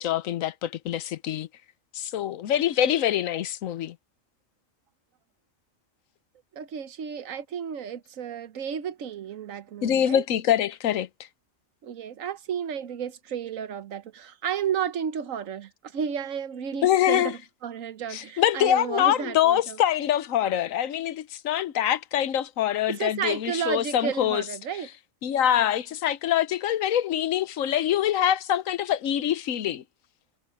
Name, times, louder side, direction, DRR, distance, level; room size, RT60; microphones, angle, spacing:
voice 1, 0.0-1.5 1.9-3.9 9.8-11.1 16.8-17.3 18.1-24.4 25.2-29.8, left 11 dB, 85° left, 1.2 m, -24 dB
voice 2, 6.5-10.2 11.8-19.8 22.9-24.9, right 8 dB, 85° right, 1.4 m, -32 dB
omnidirectional pair, 1.3 m